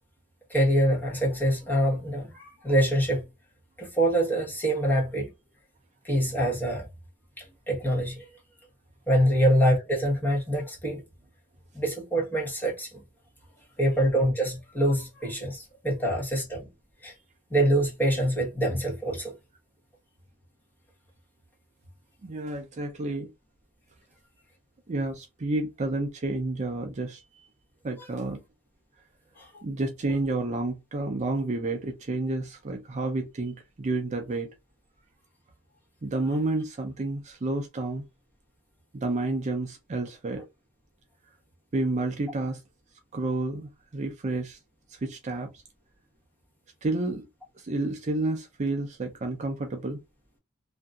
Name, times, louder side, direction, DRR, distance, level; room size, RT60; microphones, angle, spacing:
voice 1, 0.5-3.3 3.8-5.3 6.0-6.9 7.4-8.2 9.1-11.0 11.7-13.0 13.8-16.7 17.0-17.1 17.5-19.3 29.4-29.5, equal, 10° left, 1.0 m, -25 dB
voice 2, 22.2-23.3 24.9-27.5 27.8-28.4 29.6-34.5 36.0-38.0 38.9-40.4 41.7-42.6 43.1-44.6 44.9-45.5 46.8-47.3 47.6-50.0, right 2 dB, 35° right, 0.4 m, -30 dB
2.7 x 2.5 x 2.3 m
head